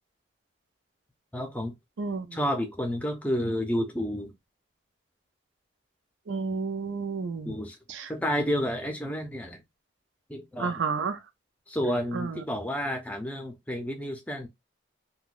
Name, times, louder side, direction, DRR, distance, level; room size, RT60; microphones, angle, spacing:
voice 1, 1.3-1.7 2.3-4.3 7.4-7.8 8.1-9.6 10.3-10.7 11.7-14.5, equal, 10° left, 0.6 m, -30 dB
voice 2, 2.0-2.4 6.3-7.5 7.9-8.1 10.6-11.2 12.1-12.4, right 5 dB, 85° right, 0.5 m, -31 dB
3.7 x 2.2 x 2.4 m
head